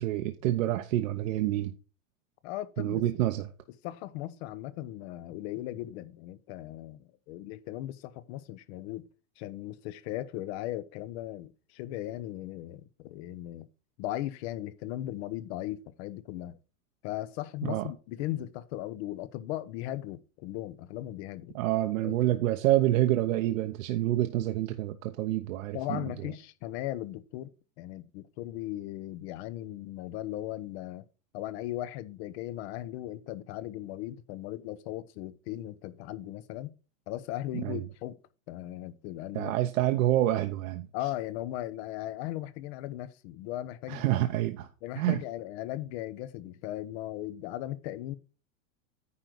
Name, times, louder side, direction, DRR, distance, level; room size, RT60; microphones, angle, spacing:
voice 1, 0.0-1.7 2.8-3.5 17.6-17.9 21.5-26.0 37.6-37.8 39.3-40.9 43.9-44.7 45.0-45.2, right 14 dB, 75° right, 0.9 m, -27 dB
voice 2, 2.4-3.0 3.8-9.1 9.4-13.7 14.0-16.6 17.0-21.5 22.0-22.2 25.7-27.5 27.8-31.1 31.3-36.7 37.1-38.2 38.5-39.5 40.9-44.0 44.8-48.1, left 14 dB, 50° left, 0.9 m, -37 dB
9.8 x 3.9 x 6.0 m
supercardioid pair, 140°, 41 cm